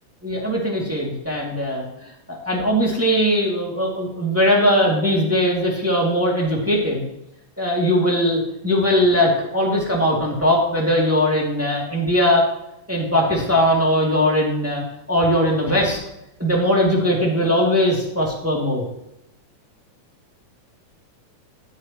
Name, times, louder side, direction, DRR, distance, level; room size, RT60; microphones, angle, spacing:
voice 1, 0.2-1.9 2.3-7.1 7.6-12.4 12.9-14.8 15.1-16.0 16.4-18.8, equal, 5° right, -4 dB, 2.0 m, -20 dB
14.0 x 10.0 x 3.1 m, 0.83 s
omnidirectional pair, 3.7 m